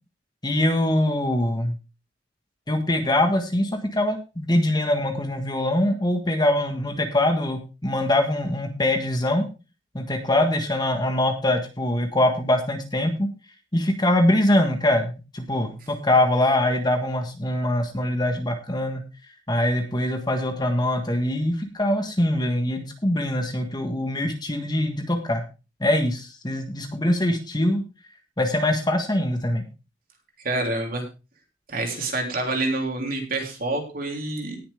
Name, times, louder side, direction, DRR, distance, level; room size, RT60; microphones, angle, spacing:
voice 1, 0.4-1.7 2.7-9.4 9.9-13.3 13.7-19.0 19.5-25.4 25.8-27.8 28.4-29.6, left 1 dB, 20° left, 5 dB, 1.5 m, -23 dB
voice 2, 30.4-31.0 31.7-34.6, right 2 dB, 50° right, 2 dB, 3.4 m, -27 dB
18.5 x 7.2 x 3.5 m, 0.30 s
head